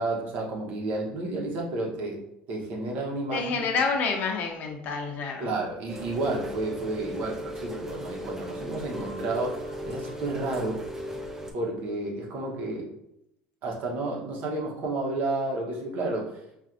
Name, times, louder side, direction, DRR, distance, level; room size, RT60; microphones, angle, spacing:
voice 1, 0.0-2.2 2.5-3.6 5.4-10.8 11.5-12.9 13.6-16.4, right 2 dB, 60° right, 0 dB, 1.0 m, -31 dB
voice 2, 3.3-5.5, left 4 dB, 55° left, 3 dB, 0.7 m, -28 dB
Rain, 5.9-11.5, equal, 15° right, 0.6 m, -36 dB
4.4 x 2.5 x 2.5 m, 0.80 s
supercardioid pair, 110°, 3 cm